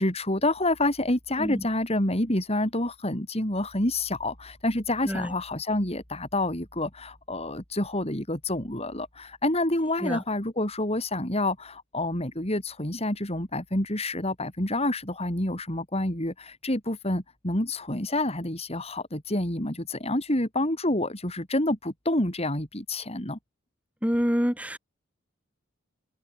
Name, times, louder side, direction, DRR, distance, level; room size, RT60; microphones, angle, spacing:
voice 1, 0.0-23.4, left 1 dB, 30° left, 4.4 m, -28 dB
voice 2, 24.0-24.8, equal, 5° right, 7.6 m, -27 dB
open air
head